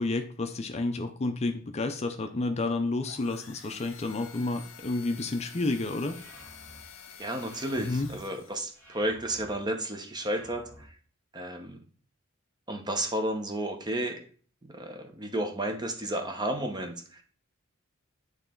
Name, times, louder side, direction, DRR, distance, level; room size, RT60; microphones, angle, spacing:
voice 1, 0.0-6.2 7.8-8.1, left 2 dB, 30° left, 7 dB, 0.5 m, -30 dB
sound 1, 3.0-8.8, left 7 dB, 65° left, 0.9 m, -49 dB
sound 2, 6.0-6.8 7.4-8.2 8.7-9.5 10.1-10.8, equal, 10° left, 1.7 m, -52 dB
voice 2, 7.2-10.9 11.3-11.8 12.7-14.2 14.7-17.2, right 1 dB, 20° right, 5 dB, 0.9 m, -32 dB
9.0 x 3.2 x 3.8 m, 0.43 s
head